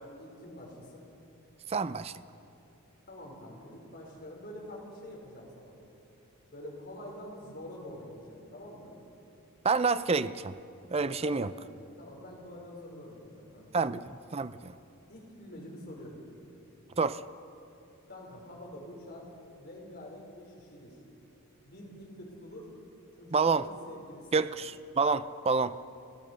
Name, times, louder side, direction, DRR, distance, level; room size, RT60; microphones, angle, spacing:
voice 1, 0.2-1.0 3.1-5.7 6.5-8.9 11.2-14.0 15.1-16.2 18.1-19.3 19.6-21.0 21.6-22.7 23.1-24.5, left 1 dB, 45° left, -2 dB, 5.4 m, -46 dB
voice 2, 1.7-2.1 9.6-10.5 10.9-11.5 13.7-14.0 14.3-14.7 17.0-17.2 23.3-23.7 24.3-25.8, right 4 dB, 25° right, 14 dB, 0.5 m, -28 dB
29.5 x 15.0 x 6.5 m, 2.7 s
head